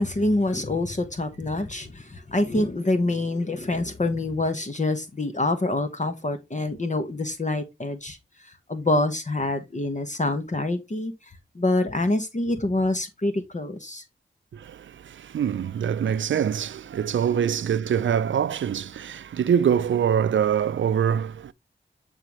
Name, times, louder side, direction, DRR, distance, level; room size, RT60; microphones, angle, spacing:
voice 1, 0.0-11.1 11.5-14.0, left 2 dB, 40° left, 1.1 m, -26 dB
voice 2, 14.5-21.5, right 8 dB, 75° right, 0.4 m, -24 dB
9.0 x 3.8 x 3.0 m
cardioid pair, 45°, 20 cm